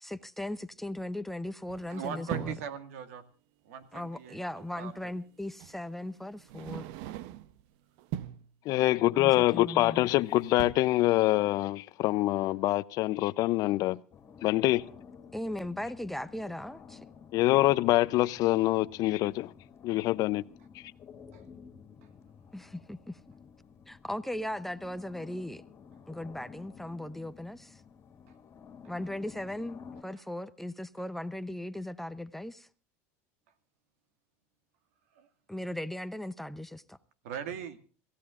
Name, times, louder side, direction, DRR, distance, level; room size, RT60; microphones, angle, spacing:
voice 1, 0.0-2.6 3.9-6.9 9.1-10.1 15.3-17.0 22.5-23.2 23.9-25.6 26.1-27.8 28.9-32.7 35.5-37.0, left 1 dB, 5° left, 0.7 m, -38 dB
sound 1, 1.7-2.7 4.4-4.5 5.6-5.8 6.4-7.6 8.0-8.5 9.8-10.2 10.4-10.7, right 12 dB, 65° right, 0.8 m, -40 dB
voice 2, 1.9-3.2 3.7-4.4 4.8-4.9 35.2-35.3 37.2-37.8, right 8 dB, 80° right, 2.1 m, -39 dB
voice 3, 8.7-14.0 14.4-14.8 17.3-19.5 19.8-20.4, left 17 dB, 55° left, 0.6 m, -25 dB
sound 2, 14.1-30.0, left 6 dB, 35° left, 2.5 m, -52 dB
27.0 x 15.5 x 2.5 m
supercardioid pair, 120°, 8 cm